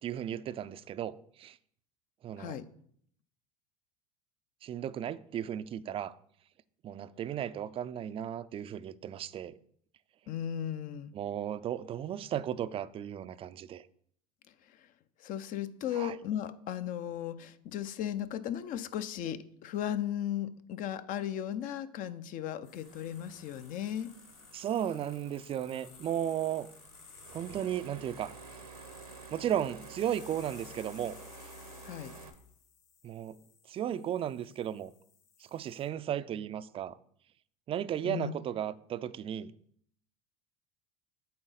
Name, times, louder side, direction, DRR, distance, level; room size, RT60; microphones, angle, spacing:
voice 1, 0.0-1.6 2.2-2.6 4.6-6.1 6.8-9.5 11.1-13.9 15.9-16.2 24.5-26.7 27.3-28.4 29.3-31.2 33.0-33.4 33.7-34.9 35.4-37.0 37.7-39.5, right 10 dB, 30° right, 0.4 m, -35 dB
voice 2, 10.3-11.1 14.7-14.9 15.2-24.1 31.8-32.1 38.0-38.4, left 10 dB, 45° left, 0.6 m, -36 dB
sound 1, 22.6-35.9, left 7 dB, 65° left, 1.3 m, -56 dB
sound 2, 22.8-32.3, right 5 dB, 85° right, 0.9 m, -51 dB
8.6 x 4.0 x 4.0 m
hypercardioid pair, 75°, 19 cm